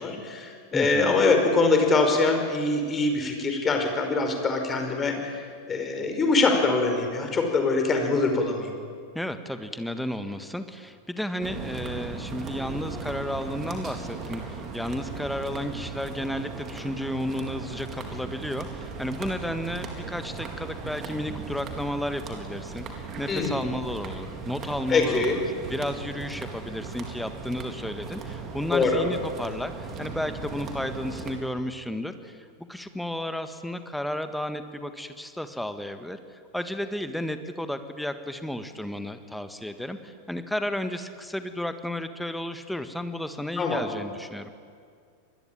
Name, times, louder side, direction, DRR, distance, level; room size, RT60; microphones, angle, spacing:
voice 1, 0.0-8.7 23.3-23.6 24.9-25.4 28.7-29.0 43.6-43.8, left 3 dB, 20° left, 4 dB, 5.0 m, -23 dB
voice 2, 0.7-1.2 9.1-25.4 25.7-44.5, left 1 dB, ahead, 9 dB, 1.7 m, -33 dB
sound 1, 11.4-31.3, right 4 dB, 30° right, 4.1 m, -37 dB
27.0 x 21.0 x 9.0 m, 2.1 s
figure-of-eight pair, 90°, 0 cm